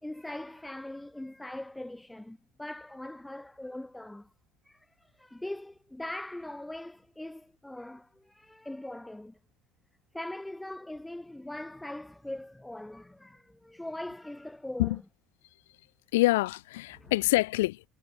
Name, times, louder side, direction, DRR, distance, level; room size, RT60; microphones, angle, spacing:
voice 1, 0.0-4.3 4.6-9.4 10.1-15.0 16.9-17.1, left 1 dB, 5° left, 2.4 m, -41 dB
voice 2, 16.1-17.9, left 19 dB, 65° left, 2.2 m, -26 dB
figure-of-eight pair, 65°, 0 cm